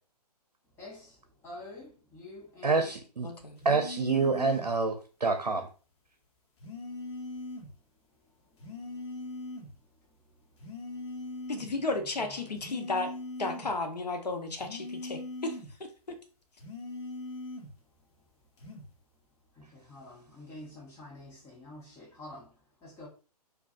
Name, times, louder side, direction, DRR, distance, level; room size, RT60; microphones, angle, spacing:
voice 1, 0.8-2.9 8.3-9.1 9.3-9.4 10.1-10.5 11.8-12.5 19.5-23.1, left 2 dB, 10° left, 0.9 m, -49 dB
voice 2, 2.6-3.3 3.6-4.9 5.2-5.7, right 4 dB, 85° right, 0.6 m, -27 dB
voice 3, 3.2-3.6 11.5-13.1 13.4-16.2, left 3 dB, 85° left, 0.7 m, -34 dB
sound 1, 3.6-4.7 6.6-7.7 8.6-9.7 10.6-11.7 12.6-13.8 14.6-15.8 16.6-17.8 18.6-18.9, left 2 dB, 45° left, 1.1 m, -40 dB
4.6 x 2.3 x 2.5 m
figure-of-eight pair, 130°, 20 cm